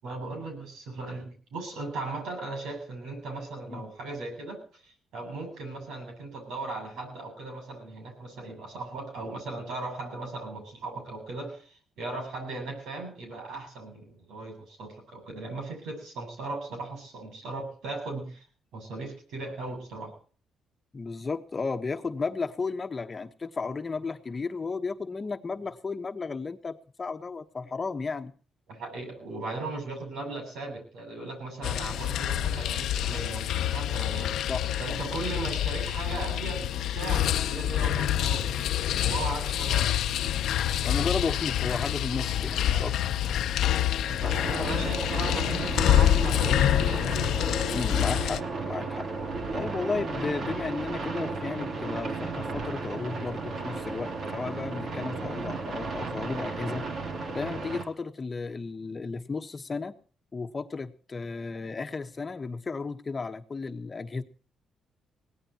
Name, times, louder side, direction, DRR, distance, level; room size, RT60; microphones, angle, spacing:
voice 1, 0.0-4.6 5.1-18.4 18.7-20.1 28.7-34.3 34.8-38.7 39.0-39.9 42.7-42.9 44.1-47.1, right 3 dB, 80° right, 5 dB, 7.9 m, -37 dB
voice 2, 20.9-28.3 34.5-35.0 40.8-42.9 44.6-44.7 47.7-49.1 49.5-56.9 57.3-60.0 60.3-64.2, left 4 dB, 30° left, 7 dB, 1.3 m, -34 dB
sound 1, 31.6-48.4, left 11 dB, 75° left, 0.8 m, -27 dB
sound 2, 44.2-57.8, right 3 dB, 55° right, 3.5 m, -34 dB
22.5 x 17.5 x 3.0 m, 0.41 s
cardioid pair, 90°, 0 cm